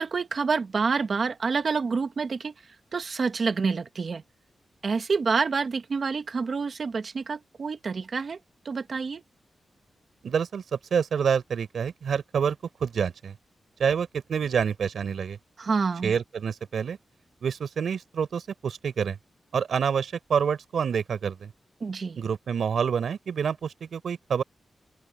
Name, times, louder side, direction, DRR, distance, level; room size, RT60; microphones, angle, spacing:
voice 1, 0.0-2.5 2.9-4.2 4.8-8.4 8.6-9.2 15.6-16.1 21.8-22.2, right 5 dB, 50° right, 1.4 m, -27 dB
voice 2, 10.2-12.6 12.8-13.4 13.8-15.4 16.0-17.0 17.4-19.2 19.5-21.5 22.2-24.4, right 7 dB, 80° right, 4.6 m, -27 dB
open air
wide cardioid pair, 130°, 0 cm